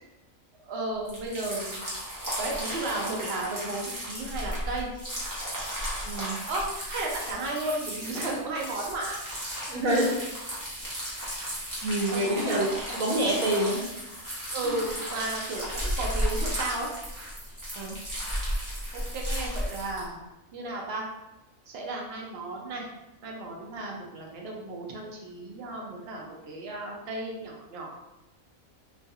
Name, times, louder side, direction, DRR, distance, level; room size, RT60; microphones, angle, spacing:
voice 1, 0.6-1.8 2.4-4.9 6.5-9.2 12.1-12.6 14.5-16.9 18.9-20.2 20.5-21.1 21.7-22.9 23.2-27.9, right 2 dB, 60° right, -1 dB, 0.7 m, -34 dB
sound 1, 1.1-20.1, equal, 15° right, 0.7 m, -34 dB
voice 2, 6.0-6.4 9.7-10.0 11.8-12.7 13.0-13.8 17.7-18.0, right 1 dB, 75° right, -2 dB, 1.1 m, -26 dB
3.0 x 2.3 x 2.7 m, 0.97 s
omnidirectional pair, 1.4 m